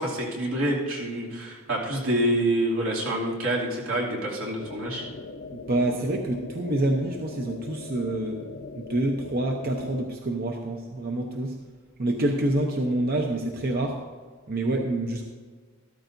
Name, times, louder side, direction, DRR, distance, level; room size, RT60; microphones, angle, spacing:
voice 1, 0.0-5.0, right 1 dB, 85° right, -4 dB, 2.6 m, -27 dB
sound 1, 4.6-10.1, left 3 dB, 60° left, 0.7 m, -40 dB
voice 2, 5.5-8.4 8.8-11.6 12.0-14.0 14.5-15.2, right 1 dB, 45° right, 2 dB, 0.8 m, -27 dB
13.0 x 13.0 x 2.6 m, 1.5 s
head